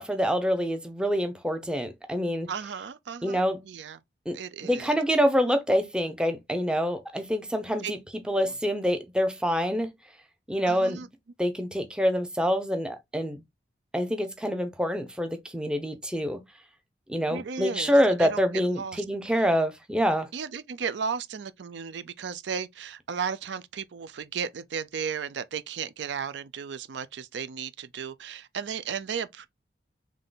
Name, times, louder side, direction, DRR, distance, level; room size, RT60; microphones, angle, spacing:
voice 1, 0.0-2.5 3.2-3.6 4.3-4.4 4.6-8.0 8.3-9.9 10.5-11.0 11.4-13.4 13.9-16.4 17.1-20.3, equal, 5° right, 0.6 m, -26 dB
voice 2, 2.5-4.0 4.3-4.9 7.8-7.9 8.3-8.5 10.6-11.1 17.3-17.9 18.2-19.0 20.3-29.5, right 6 dB, 75° right, 0.4 m, -35 dB
3.7 x 3.2 x 3.9 m
head